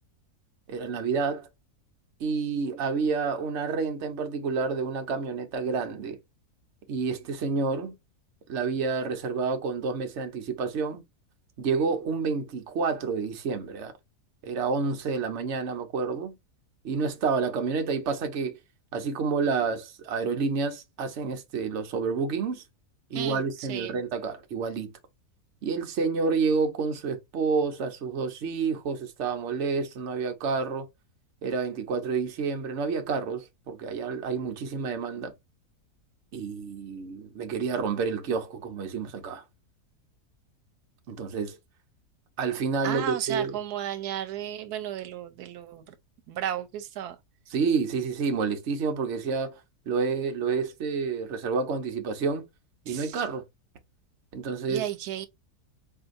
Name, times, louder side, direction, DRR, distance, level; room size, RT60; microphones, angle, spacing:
voice 1, 0.7-1.5 2.2-6.2 6.9-7.9 8.5-11.0 11.6-13.9 14.4-16.3 16.8-18.6 18.9-22.6 23.1-24.9 25.6-30.9 31.4-35.3 36.3-39.4 41.1-41.6 42.4-43.6 47.5-49.6 49.9-52.4 52.9-53.4 54.3-54.9, right 5 dB, 55° right, 1.0 m, -29 dB
voice 2, 23.1-24.0 42.8-45.9 46.3-47.2 52.9-53.2 54.7-55.3, right 10 dB, 90° right, 1.2 m, -34 dB
4.4 x 2.8 x 2.5 m
omnidirectional pair, 1.6 m